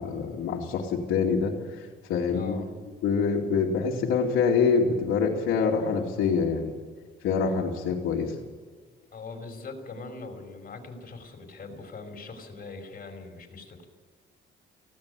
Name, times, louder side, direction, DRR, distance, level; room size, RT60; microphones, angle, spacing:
voice 1, 0.0-1.6 2.1-2.6 3.0-6.7 7.2-8.3, left 5 dB, 90° left, -6 dB, 2.8 m, -25 dB
voice 2, 2.3-2.7 9.1-13.9, left 3 dB, 45° left, 3 dB, 5.5 m, -41 dB
18.5 x 17.0 x 8.5 m, 1.5 s
cardioid pair, 90°, 20 cm